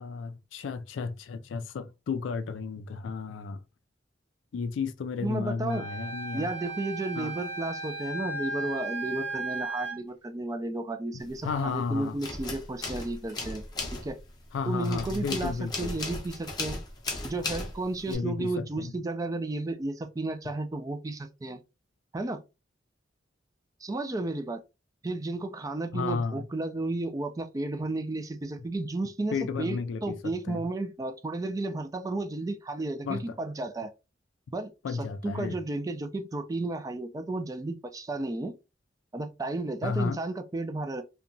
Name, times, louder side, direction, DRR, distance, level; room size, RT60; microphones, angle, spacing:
voice 1, 0.0-3.6 4.5-6.5 7.2-7.4 11.4-12.2 14.5-15.9 18.1-18.9 25.9-26.5 29.3-30.6 33.0-33.4 34.8-35.6 39.8-40.2, left 5 dB, 80° left, 0.3 m, -33 dB
voice 2, 5.2-5.8 6.3-13.7 13.9-14.2 14.7-16.8 17.2-21.6 22.1-22.4 23.8-24.6 25.0-33.9 34.5-38.5 39.1-41.0, right 2 dB, 20° right, 0.3 m, -33 dB
Wind instrument woodwind instrument, 5.7-10.0, right 2 dB, 75° right, 1.0 m, -35 dB
sound 1, 11.3-11.8 12.1-18.2, left 2 dB, 20° left, 0.6 m, -36 dB
2.8 x 2.2 x 2.5 m
head